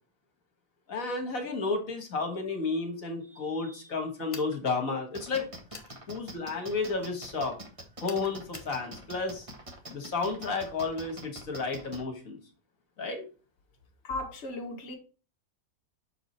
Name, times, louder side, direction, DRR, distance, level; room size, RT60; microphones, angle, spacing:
voice 1, 0.9-5.5 6.1-7.6 8.0-9.5 9.9-12.4 13.0-13.2, left 4 dB, 60° left, 4 dB, 1.8 m, -32 dB
sound 1, 4.3-4.6 5.7-5.9 8.0-8.7, left 3 dB, 25° left, 0.9 m, -45 dB
sound 2, 5.1-12.0, right 1 dB, 20° right, 1.3 m, -44 dB
voice 2, 14.0-14.9, left 2 dB, 45° left, 1 dB, 1.4 m, -36 dB
6.4 x 5.0 x 4.1 m, 0.36 s
omnidirectional pair, 1.7 m